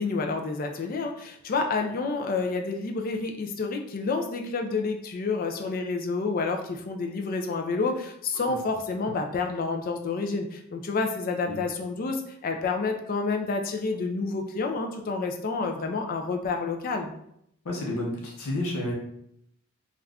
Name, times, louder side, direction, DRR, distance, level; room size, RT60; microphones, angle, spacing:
voice 1, 0.0-17.1, left 4 dB, 40° left, 4 dB, 0.3 m, -29 dB
voice 2, 17.6-18.9, left 1 dB, 90° left, -2 dB, 0.7 m, -30 dB
2.4 x 2.2 x 3.3 m, 0.74 s
head